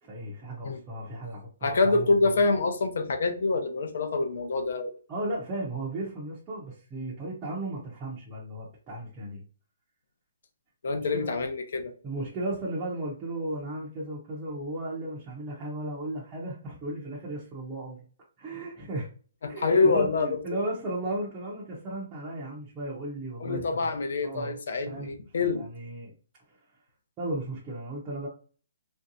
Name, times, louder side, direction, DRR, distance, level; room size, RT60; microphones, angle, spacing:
voice 1, 0.0-2.4 5.1-9.4 11.1-11.3 12.0-18.0 18.4-19.1 19.5-23.9 24.2-24.6 24.9-25.1 25.5-26.1 26.5-26.6 27.2-28.3, right 1 dB, 15° right, -6 dB, 0.6 m, -35 dB
voice 2, 1.6-4.9 10.8-11.9 19.4-20.6 23.4-25.7, left 3 dB, 55° left, 6 dB, 0.6 m, -26 dB
3.3 x 2.6 x 2.7 m, 0.40 s
hypercardioid pair, 175°, 0 cm